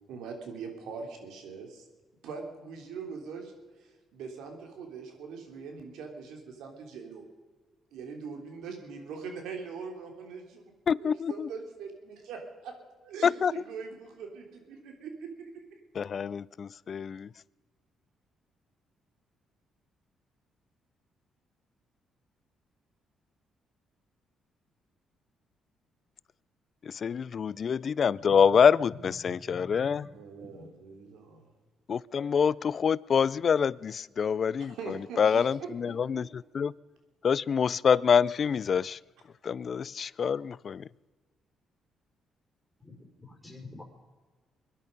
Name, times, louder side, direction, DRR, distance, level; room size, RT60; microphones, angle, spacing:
voice 1, 0.1-1.8 2.2-3.5 3.8-7.3 7.9-10.7 11.0-12.7 13.0-15.8 30.1-31.5 34.6-35.7, right 5 dB, 85° right, 4 dB, 3.2 m, -42 dB
voice 2, 10.9-11.5 13.2-13.5 16.0-17.3 26.8-30.1 31.9-34.8 35.2-36.7 37.2-39.0 39.4-40.9, left 7 dB, 50° left, 22 dB, 0.4 m, -26 dB
voice 3, 29.5-29.9 42.8-42.9 43.2-43.8, left 3 dB, 10° left, 1 dB, 4.9 m, -45 dB
23.0 x 11.0 x 5.3 m, 1.4 s
cardioid pair, 90°, 0 cm